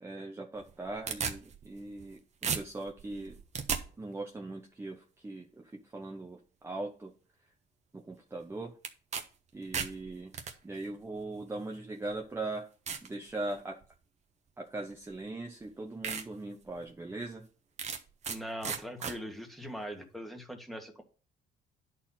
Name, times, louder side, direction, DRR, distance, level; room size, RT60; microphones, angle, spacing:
voice 1, 0.0-3.4 4.0-7.1 7.9-8.8 9.5-10.3 10.6-12.7 13.0-13.8 14.6-17.5, right 2 dB, 15° right, 1 dB, 1.1 m, -40 dB
sound 1, 0.6-2.1 2.4-3.8 8.8-9.2 9.5-10.5 11.4-11.5 12.1-12.2 12.9-13.1 13.6-13.9 15.1-15.2 15.6-15.7 16.0-16.2 16.7-16.8 17.8-18.4 18.6-19.1, right 6 dB, 40° right, 1.2 m, -35 dB
voice 2, 18.3-21.0, equal, ahead, 4 dB, 1.9 m, -41 dB
10.5 x 4.5 x 5.7 m, 0.37 s
cardioid pair, 110°, 17 cm